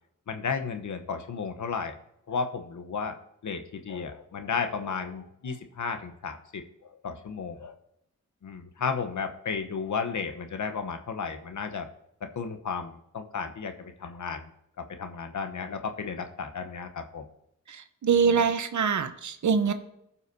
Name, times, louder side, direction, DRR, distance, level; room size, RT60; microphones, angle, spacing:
voice 1, 0.3-1.9 2.3-3.2 3.4-7.7 8.4-11.9 12.2-14.5 14.8-17.2 18.2-18.4, left 5 dB, 65° left, 7 dB, 1.0 m, -33 dB
voice 2, 17.7-19.7, right 6 dB, 65° right, 9 dB, 1.0 m, -24 dB
15.5 x 5.7 x 2.7 m, 0.79 s
cardioid pair, 50°, 32 cm